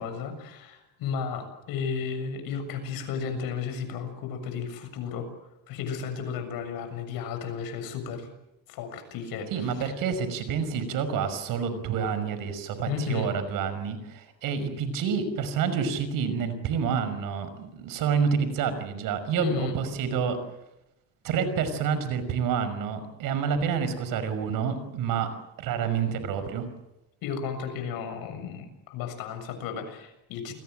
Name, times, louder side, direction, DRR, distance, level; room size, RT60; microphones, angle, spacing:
voice 1, 0.0-5.3 5.7-8.3 8.7-9.9 12.9-13.3 19.4-19.7 27.2-30.5, left 6 dB, 75° left, 8 dB, 7.0 m, -33 dB
voice 2, 9.5-20.4 21.2-25.3 25.6-26.7, right 6 dB, 70° right, 11 dB, 5.6 m, -28 dB
30.0 x 21.5 x 7.8 m, 0.88 s
cardioid pair, 125°, 35 cm